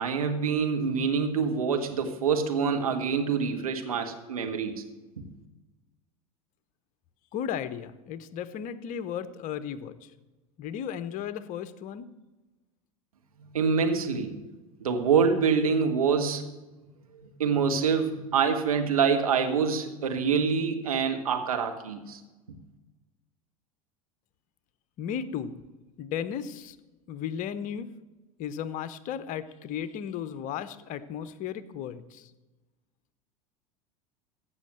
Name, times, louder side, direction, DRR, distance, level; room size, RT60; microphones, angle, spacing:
voice 1, 0.0-4.7 13.4-14.3 14.8-16.4 17.2-22.2, right 6 dB, 80° right, 5 dB, 1.5 m, -26 dB
voice 2, 7.3-10.1 10.6-12.1 25.0-25.6 26.0-26.8 27.1-27.9 28.4-32.3, left 8 dB, 45° left, 14 dB, 0.9 m, -35 dB
15.5 x 6.4 x 7.7 m, 1.1 s
figure-of-eight pair, 80°, 18 cm